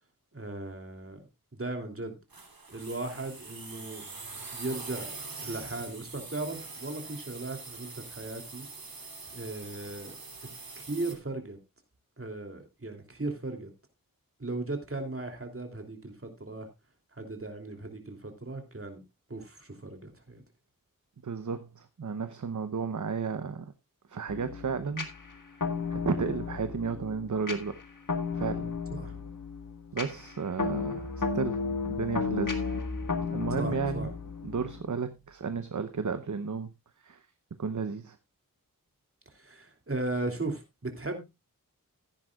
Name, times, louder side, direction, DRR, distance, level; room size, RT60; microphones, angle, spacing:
voice 1, 0.3-1.2 1.5-2.2 2.7-4.0 4.5-5.1 5.4-8.7 9.3-10.2 10.7-11.6 12.2-13.7 14.4-16.7 17.2-19.0 19.3-20.4 28.9-29.2 33.6-34.1 39.3-41.2, right 2 dB, 40° right, 3.0 m, -37 dB
sound 1, 2.3-11.1, right 4 dB, 85° right, 3.3 m, -43 dB
voice 2, 21.2-23.7 24.1-25.1 25.9-27.8 28.3-28.7 29.9-32.6 33.3-34.1 34.4-36.7 37.0-37.2 37.6-38.2, right 5 dB, 60° right, 0.9 m, -33 dB
sound 2, 24.3-34.9, left 4 dB, 65° left, 1.7 m, -34 dB
15.0 x 10.0 x 2.4 m
wide cardioid pair, 75°, 34 cm